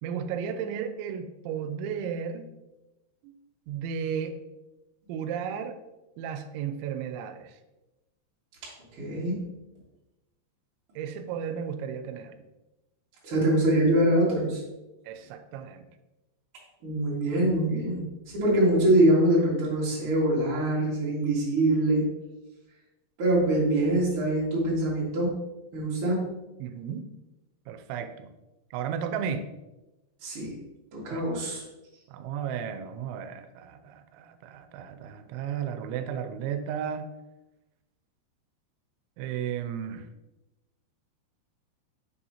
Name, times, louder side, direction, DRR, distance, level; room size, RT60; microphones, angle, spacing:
voice 1, 0.0-2.5 3.2-3.3 3.7-4.4 5.1-5.8 6.2-7.5 11.0-12.4 15.1-15.9 26.6-27.0 27.7-28.3 28.7-29.5 31.1-31.2 32.1-37.1 39.2-40.1, right 7 dB, 90° right, 9 dB, 2.9 m, -34 dB
voice 2, 8.9-9.4 13.2-14.6 16.8-22.0 23.2-25.4 25.7-26.3 30.2-30.5 30.9-31.6, right 1 dB, 45° right, -6 dB, 2.1 m, -24 dB
6.3 x 5.5 x 2.8 m, 1.0 s
omnidirectional pair, 5.2 m